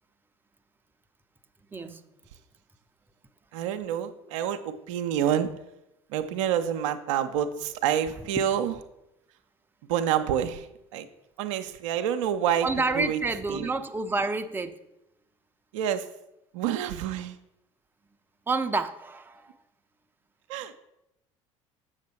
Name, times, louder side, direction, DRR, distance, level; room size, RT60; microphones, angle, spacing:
voice 1, 3.5-5.5 6.1-8.8 9.9-10.7 10.9-11.1 11.4-12.7 12.9-13.2 13.5-13.7 15.7-16.1 16.5-17.4 20.5-20.7, right 9 dB, 70° right, 8 dB, 0.6 m, -28 dB
voice 2, 12.6-14.8 18.5-19.5, right 3 dB, 10° right, 8 dB, 0.6 m, -29 dB
7.4 x 6.3 x 4.3 m, 0.87 s
hypercardioid pair, 65°, 16 cm